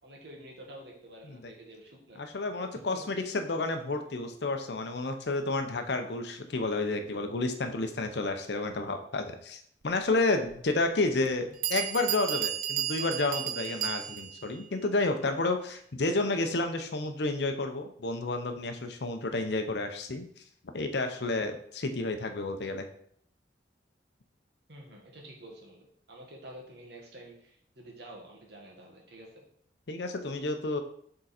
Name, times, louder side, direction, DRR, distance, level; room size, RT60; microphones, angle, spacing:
voice 1, 0.0-2.2 2.9-3.1 3.6-3.7 3.9-4.0 24.7-29.4, right 1 dB, 65° right, -1 dB, 1.5 m, -49 dB
voice 2, 2.2-20.4 20.7-22.9 29.9-30.8, left 2 dB, 65° left, 7 dB, 0.7 m, -31 dB
Bell, 11.3-11.4 11.6-14.4, right 11 dB, 45° right, 0.5 m, -33 dB
6.5 x 3.8 x 4.2 m, 0.65 s
head